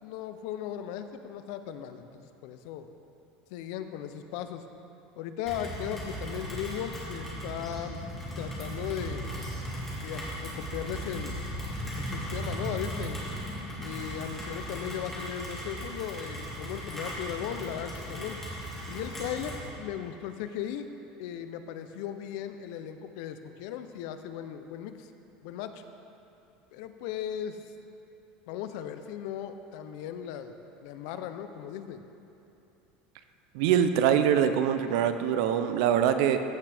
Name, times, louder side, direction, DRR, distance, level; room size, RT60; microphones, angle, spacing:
voice 1, 0.0-2.9 3.5-4.6 5.2-8.0 8.4-9.3 10.0-11.4 12.0-13.2 13.8-18.4 18.9-20.9 21.2-25.1 25.4-25.8 26.7-27.6 28.5-30.6 30.8-32.1, left 10 dB, 65° left, 9 dB, 0.5 m, -37 dB
Rain, 5.5-19.7, equal, 10° left, 1.7 m, -37 dB
voice 2, 33.5-36.4, right 9 dB, 70° right, 9 dB, 0.5 m, -24 dB
14.5 x 6.0 x 3.4 m, 3.0 s
cardioid pair, 160°, 3 cm